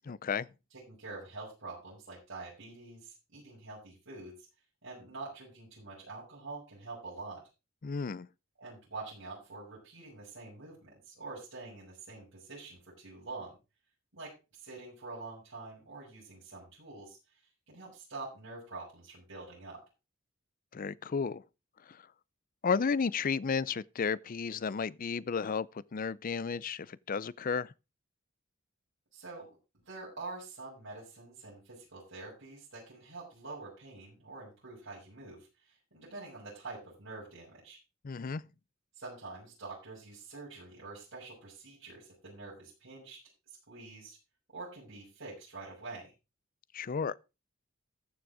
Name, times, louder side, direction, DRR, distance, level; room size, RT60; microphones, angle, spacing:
voice 1, 0.0-0.5 7.8-8.3 20.7-21.4 21.9-22.0 22.6-27.7 38.0-38.4 46.7-47.2, left 5 dB, 45° left, 0.5 m, -33 dB
voice 2, 0.7-4.3 4.8-7.4 8.6-13.5 14.1-17.4 17.7-19.8 29.1-29.5 29.8-37.8 39.0-43.2 43.7-44.2 44.5-46.1, right 3 dB, 65° right, 6.3 m, -46 dB
14.0 x 6.3 x 4.8 m
head